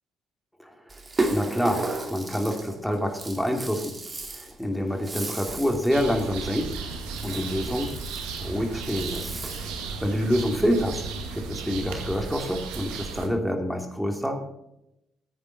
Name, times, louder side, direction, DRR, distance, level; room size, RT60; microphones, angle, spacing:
voice 1, 0.6-1.0 1.3-3.9 4.3-6.7 7.2-7.9 8.4-9.3 9.8-11.0 11.3-14.5, equal, ahead, 3 dB, 2.9 m, -27 dB
Rattle (instrument), 0.9-9.9, right 2 dB, 30° right, 2.5 m, -35 dB
sound 1, 5.9-13.3, right 4 dB, 80° right, 1.8 m, -35 dB
15.5 x 8.6 x 4.2 m, 0.83 s
hypercardioid pair, 60°, 0 cm